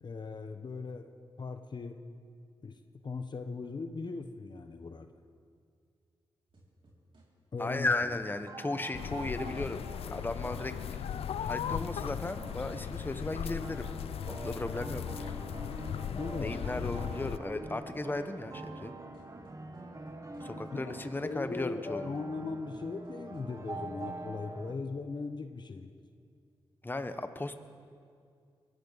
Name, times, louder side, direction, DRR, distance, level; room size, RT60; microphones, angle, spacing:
voice 1, 0.0-2.0 2.6-5.1 7.5-7.9 16.1-16.7 20.7-20.8 21.2-25.9, left 4 dB, 50° left, 7 dB, 0.8 m, -39 dB
sound 1, 6.5-7.2 7.6-12.0 12.4-23.7, right 1 dB, 60° right, 5.2 m, -60 dB
voice 2, 7.6-10.8 11.4-13.9 14.3-15.4 16.4-18.9 20.4-22.1 26.8-27.6, left 2 dB, 20° left, 9 dB, 1.0 m, -35 dB
sound 2, 7.7-24.7, right 2 dB, 35° right, 1.4 m, -45 dB
sound 3, 8.9-17.4, left 9 dB, 80° left, 0.4 m, -38 dB
23.0 x 14.5 x 4.0 m, 2.3 s
cardioid pair, 55°, 10 cm